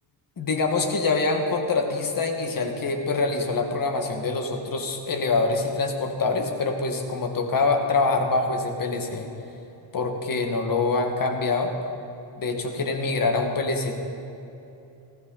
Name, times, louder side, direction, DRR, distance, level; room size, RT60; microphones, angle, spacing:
voice 1, 0.4-9.3 9.9-11.7 12.4-13.9, left 3 dB, 45° left, 3 dB, 1.6 m, -25 dB
18.5 x 16.0 x 3.9 m, 2.8 s
wide cardioid pair, 175°, 46 cm